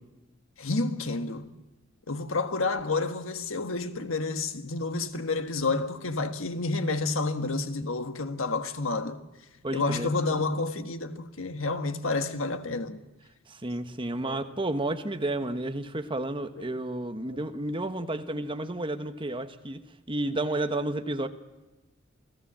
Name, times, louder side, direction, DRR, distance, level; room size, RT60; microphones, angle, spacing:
voice 1, 0.6-1.5 2.1-9.2 9.7-13.0 14.2-14.4 17.3-17.4, left 3 dB, 70° left, 1.6 m, -30 dB
voice 2, 9.6-10.1 13.5-21.3, right 2 dB, 25° right, 1.2 m, -31 dB
28.5 x 17.0 x 7.5 m
head